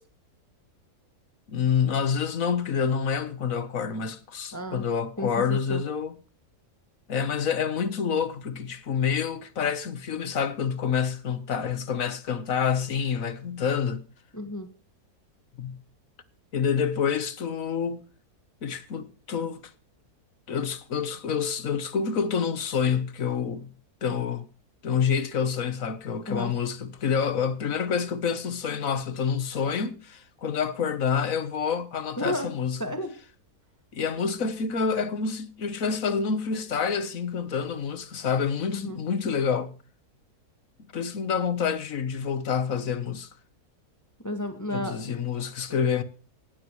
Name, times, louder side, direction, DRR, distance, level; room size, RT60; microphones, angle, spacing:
voice 1, 1.5-6.1 7.1-14.0 15.6-15.8 16.5-18.0 18.6-19.6 20.5-23.7 24.0-24.5 24.8-32.8 33.9-39.7 40.9-43.3 44.7-46.0, left 6 dB, 60° left, 1.5 m, -27 dB
voice 2, 4.5-4.9 5.2-5.8 14.3-14.7 26.3-26.5 32.2-32.5 32.8-33.1 38.7-39.0 44.2-45.1, left 1 dB, 10° left, 1.7 m, -32 dB
17.5 x 12.5 x 3.2 m
omnidirectional pair, 1.6 m